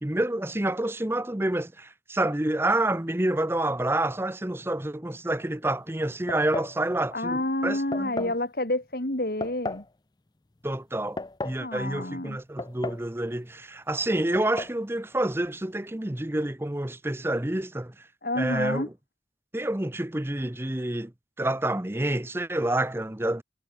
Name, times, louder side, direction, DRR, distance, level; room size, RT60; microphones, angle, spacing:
voice 1, 0.0-8.3 10.6-11.2 11.4-17.9 18.4-18.9 19.5-21.1 21.4-23.4, right 1 dB, 15° right, 0.8 m, -28 dB
sound 1, 6.3-6.8 7.9-8.4 9.4-9.9 10.9-11.6 12.6-13.1 13.4-13.5 14.3-14.8, left 2 dB, 25° left, 0.5 m, -34 dB
voice 2, 7.1-9.8 11.6-12.4 18.2-18.9, left 1 dB, 55° left, 2.9 m, -29 dB
head